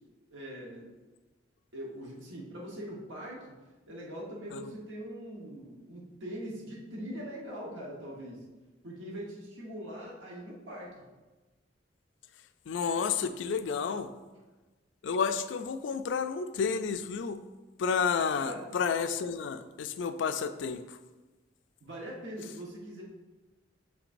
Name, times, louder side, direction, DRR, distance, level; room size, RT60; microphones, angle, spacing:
voice 1, 0.3-0.9 1.7-3.5 3.9-8.4 8.8-10.9 18.4-18.7 21.8-23.0, equal, 85° right, -4 dB, 1.2 m, -42 dB
voice 2, 12.7-14.1 15.0-17.4 17.8-21.0, left 6 dB, 70° left, 10 dB, 0.4 m, -31 dB
6.5 x 5.9 x 2.6 m, 1.2 s
head